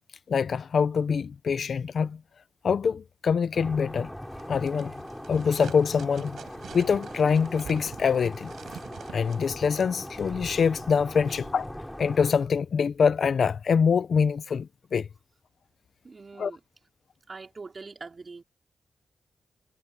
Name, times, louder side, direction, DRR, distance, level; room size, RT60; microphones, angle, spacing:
voice 1, 0.3-2.2 2.6-4.1 4.5-4.9 5.3-6.4 6.7-8.5 9.1-15.1 16.4-16.5, left 6 dB, 70° left, 0.5 m, -25 dB
sound 1, 3.5-12.3, equal, 5° left, 4.2 m, -40 dB
sound 2, 4.2-9.5, right 8 dB, 90° right, 7.3 m, -46 dB
voice 2, 16.0-16.6 17.3-18.4, right 4 dB, 45° right, 4.3 m, -43 dB
cardioid pair, 75°, 0 cm